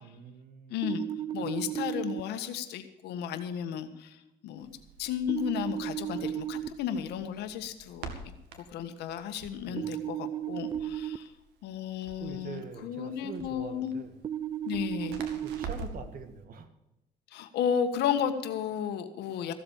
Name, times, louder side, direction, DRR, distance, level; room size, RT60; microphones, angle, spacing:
voice 1, 0.0-0.8 1.4-1.5 9.6-10.0 12.2-14.1 15.4-16.7, right 6 dB, 55° right, 9 dB, 1.9 m, -44 dB
voice 2, 0.7-1.0 1.3-4.2 4.4-4.7 5.0-8.1 8.7-11.3 11.6-13.9 14.6-15.2 17.3-19.5, left 8 dB, 80° left, 9 dB, 1.5 m, -33 dB
sound 1, 0.8-2.2 5.3-6.7 9.8-11.2 14.2-15.6, right 11 dB, 30° right, 0.4 m, -34 dB
Crackle, 4.6-16.1, right 4 dB, 90° right, 2.1 m, -46 dB
15.0 x 7.9 x 7.2 m, 0.91 s
cardioid pair, 110°, 17 cm